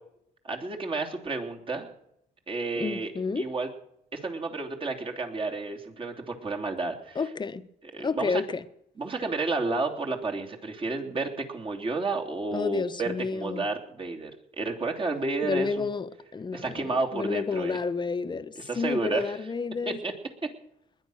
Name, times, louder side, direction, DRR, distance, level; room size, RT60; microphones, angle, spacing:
voice 1, 0.4-1.9 2.5-3.7 4.1-7.2 7.9-8.4 9.0-14.3 14.6-15.9 16.5-17.8 18.5-19.3 19.9-20.1, right 3 dB, 35° right, 3.1 m, -31 dB
voice 2, 2.7-3.5 7.1-7.6 8.0-8.6 12.5-13.7 15.4-20.0, left 4 dB, 30° left, 1.1 m, -30 dB
20.5 x 10.5 x 6.5 m
cardioid pair, 90°, 16 cm